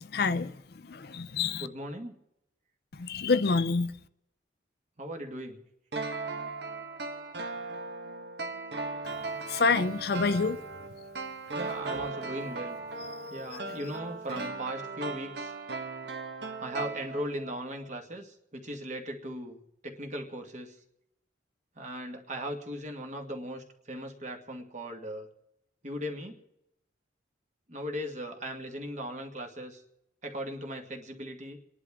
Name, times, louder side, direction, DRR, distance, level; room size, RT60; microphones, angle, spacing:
voice 1, 0.1-0.5 0.9-1.7 3.0-3.9 9.5-10.6, left 4 dB, 55° left, 0.5 m, -27 dB
voice 2, 1.6-2.1 5.0-5.6 11.5-12.8 13.3-15.5 16.6-20.8 21.7-25.3 25.8-26.4 27.7-29.8 30.2-31.6, equal, 40° right, 1.7 m, -38 dB
sound 1, 5.9-17.6 17.8-17.9, right 3 dB, 65° right, 1.3 m, -37 dB
28.5 x 11.0 x 3.6 m
head